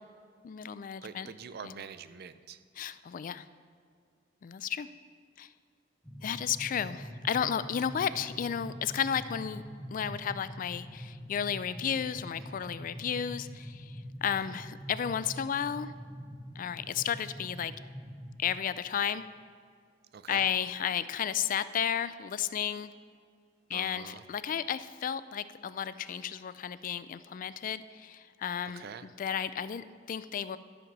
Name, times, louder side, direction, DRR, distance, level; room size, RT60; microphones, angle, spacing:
voice 1, 0.4-1.3 1.6-1.7 2.8-3.5 4.4-4.9 5.4-5.5 6.2-9.6 9.9-13.9 14.2-15.9 16.6-17.7 18.4-19.3 20.3-22.9 23.7-28.9 29.2-30.6, left 8 dB, 45° left, 15 dB, 0.3 m, -33 dB
voice 2, 1.0-2.6 12.4-12.7 14.3-14.6 20.1-20.5 23.7-24.2 28.7-29.1, right 6 dB, 55° right, 13 dB, 0.4 m, -45 dB
sound 1, 6.0-18.4, equal, 5° left, 0.7 m, -44 dB
12.5 x 5.1 x 6.1 m, 2.1 s
head